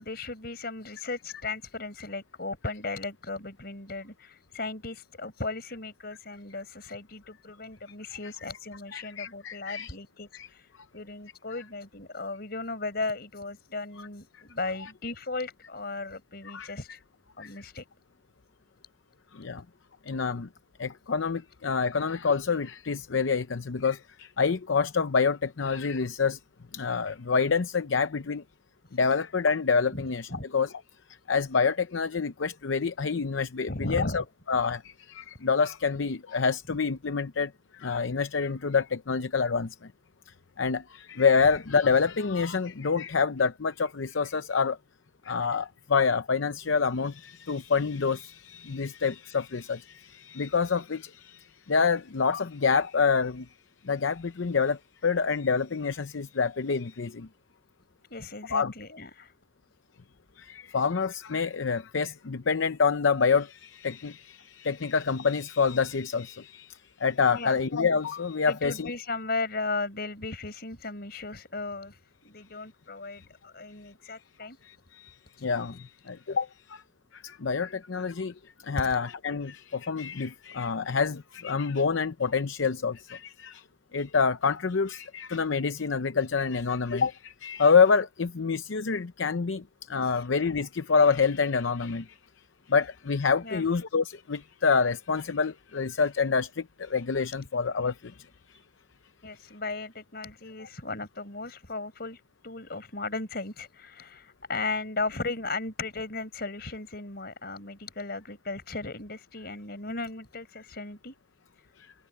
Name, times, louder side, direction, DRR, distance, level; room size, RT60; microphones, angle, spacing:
voice 1, 0.0-10.7 10.9-17.0 17.4-17.8 29.9-30.0 30.3-30.5 33.7-34.3 58.1-59.3 67.3-67.6 68.5-74.6 78.8-79.0 93.4-93.7 99.2-111.1, left 3 dB, 55° left, 4.7 m, -36 dB
voice 2, 8.9-9.9 10.3-10.5 14.0-14.1 14.3-14.4 16.4-16.7 17.4-17.5 19.3-19.6 20.1-20.5 20.8-26.4 26.7-28.4 28.9-30.7 31.3-39.9 40.3-44.8 45.2-53.5 53.8-57.3 58.5-58.7 60.4-68.9 73.2-73.3 74.6-76.8 77.1-78.3 78.6-83.6 83.9-92.2 92.7-98.6 111.8-111.9, left 5 dB, 90° left, 0.7 m, -27 dB
head